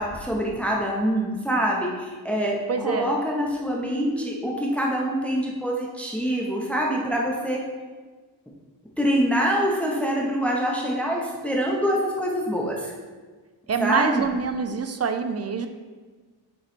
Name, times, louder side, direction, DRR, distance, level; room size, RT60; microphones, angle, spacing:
voice 1, 0.0-7.6 9.0-12.9 13.8-14.3, equal, 5° left, -2 dB, 0.7 m, -25 dB
voice 2, 2.7-3.1 13.7-15.7, right 5 dB, 40° right, 7 dB, 0.4 m, -26 dB
7.9 x 3.0 x 4.2 m, 1.4 s
wide cardioid pair, 160°, 42 cm